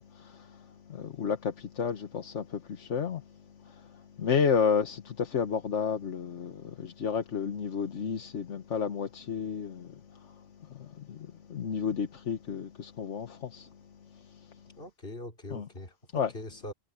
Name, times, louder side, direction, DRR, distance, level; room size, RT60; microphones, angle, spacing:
voice 1, 0.0-3.2 3.6-3.9 4.2-10.3 10.7-13.7 15.5-15.7 16.1-16.3, left 6 dB, 85° left, 1.5 m, -32 dB
voice 2, 14.8-16.7, left 1 dB, 55° left, 4.8 m, -42 dB
omnidirectional pair, 1.2 m